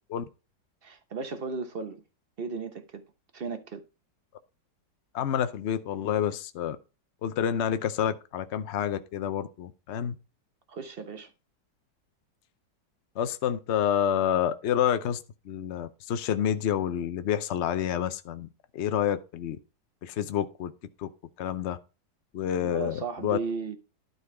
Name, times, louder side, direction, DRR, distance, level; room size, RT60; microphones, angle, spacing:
voice 1, 0.8-2.0 2.4-3.0 3.3-3.8 10.7-11.3 22.6-23.8, right 4 dB, 45° right, 0.8 m, -35 dB
voice 2, 5.1-6.8 7.2-10.1 13.2-15.2 15.4-18.5 18.7-19.6 20.0-20.7 21.0-21.1 21.4-21.8 22.3-23.4, left 9 dB, 90° left, 0.6 m, -28 dB
12.0 x 4.0 x 4.8 m
omnidirectional pair, 2.0 m